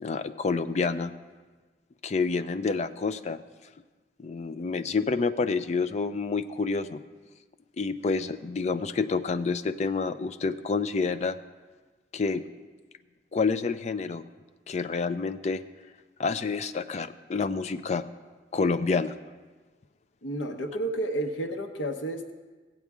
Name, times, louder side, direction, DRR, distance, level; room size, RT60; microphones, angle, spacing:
voice 1, 0.0-1.1 2.0-3.4 4.2-7.0 7.8-11.4 12.1-12.4 13.3-14.2 14.7-15.6 16.2-18.0 18.5-19.1, left 4 dB, 35° left, 10 dB, 0.3 m, -28 dB
voice 2, 20.2-22.3, right 1 dB, 85° left, 5 dB, 0.9 m, -31 dB
16.0 x 8.3 x 3.6 m, 1.3 s
head